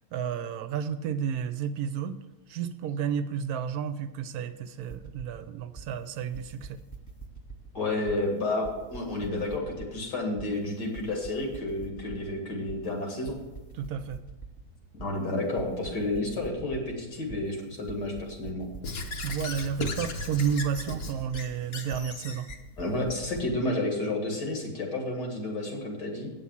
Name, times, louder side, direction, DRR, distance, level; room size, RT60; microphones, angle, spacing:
voice 1, 0.1-2.2 2.5-6.8 13.8-14.2 19.2-22.5, right 7 dB, 70° right, 11 dB, 1.0 m, -31 dB
sound 1, 4.8-23.7, right 4 dB, 15° left, 0.7 m, -45 dB
voice 2, 7.7-13.4 15.0-18.7 22.8-26.3, left 2 dB, 80° left, 1 dB, 2.7 m, -31 dB
Squeak / Writing, 18.8-22.6, left 3 dB, 60° left, 1.4 m, -36 dB
8.4 x 7.3 x 7.1 m, 1.1 s
omnidirectional pair, 1.8 m